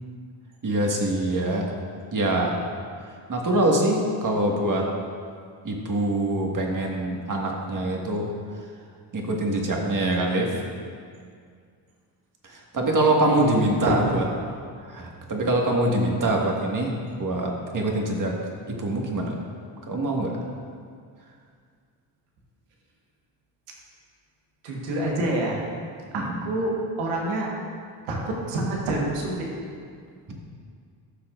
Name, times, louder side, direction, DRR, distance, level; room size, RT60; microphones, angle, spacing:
voice 1, 0.6-1.6 2.1-2.5 3.3-4.8 5.6-8.3 9.1-10.5 12.4-14.2 14.8-18.3 18.7-19.4 19.9-20.3 26.1-26.3 30.3-30.4, right 1 dB, 40° right, 0 dB, 1.7 m, -24 dB
voice 2, 13.9-14.2 24.6-25.6 26.1-27.5 28.1-29.5, right 1 dB, 85° right, -2 dB, 1.5 m, -27 dB
13.5 x 5.9 x 2.5 m, 2.2 s
supercardioid pair, 60°, 50 cm